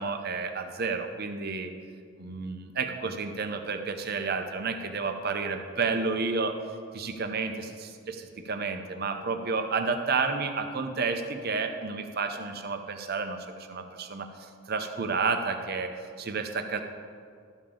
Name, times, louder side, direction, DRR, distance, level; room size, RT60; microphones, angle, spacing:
voice 1, 0.0-1.7 2.2-6.6 6.9-16.8, right 4 dB, 45° right, 6 dB, 0.6 m, -31 dB
12.0 x 6.9 x 3.7 m, 2.1 s
head